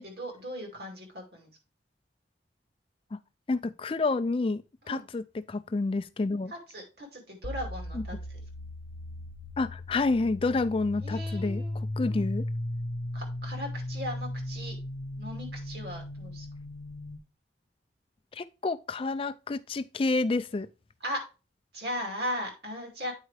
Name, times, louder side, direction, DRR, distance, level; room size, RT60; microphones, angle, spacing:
voice 1, 0.0-1.5 4.8-5.0 6.5-8.4 11.0-12.2 13.1-14.8 15.2-16.5 21.0-21.2 21.7-23.1, equal, 65° right, 2.4 m, -38 dB
voice 2, 3.5-4.6 4.9-6.5 7.9-8.0 9.6-12.4 18.3-20.7, left 3 dB, 30° left, 0.3 m, -29 dB
sound 1, 7.4-17.2, left 1 dB, 70° left, 0.8 m, -36 dB
8.9 x 4.6 x 3.3 m
head